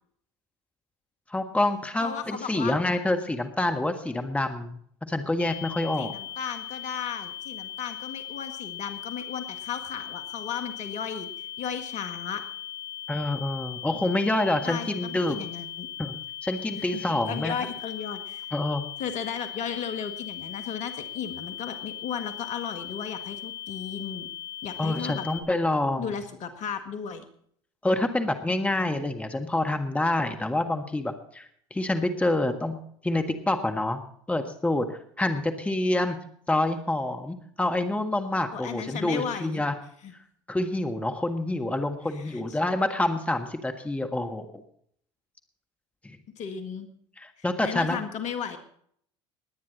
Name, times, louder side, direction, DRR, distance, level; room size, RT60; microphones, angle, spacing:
voice 1, 1.3-4.8 5.1-6.1 13.1-15.4 16.0-16.2 16.4-17.5 18.5-18.8 24.8-26.1 27.8-34.0 34.3-36.2 36.5-39.8 40.5-44.6 46.0-46.2 47.2-48.0, left 2 dB, 10° left, 6 dB, 1.5 m, -27 dB
voice 2, 2.0-2.7 6.0-12.4 14.6-15.9 16.8-17.0 17.3-18.5 19.0-24.3 24.6-25.2 26.0-27.2 38.5-39.6 40.0-40.1 42.1-42.6 46.4-46.9 47.6-48.6, left 7 dB, 55° left, 8 dB, 1.8 m, -35 dB
sound 1, 5.4-25.4, left 12 dB, 75° left, 2.8 m, -39 dB
20.0 x 9.6 x 4.1 m, 0.64 s
hypercardioid pair, 70°, 15 cm